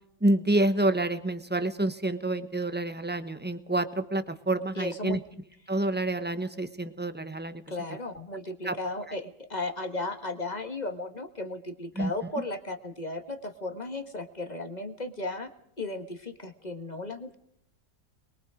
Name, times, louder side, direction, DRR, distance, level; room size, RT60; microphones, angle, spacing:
voice 1, 0.2-5.2 5.7-7.6 8.7-8.8 12.0-12.1, right 1 dB, 5° right, 10 dB, 1.0 m, -28 dB
voice 2, 4.8-5.2 7.7-17.3, left 2 dB, 25° left, 6 dB, 1.7 m, -35 dB
24.5 x 22.0 x 5.1 m, 0.72 s
omnidirectional pair, 1.8 m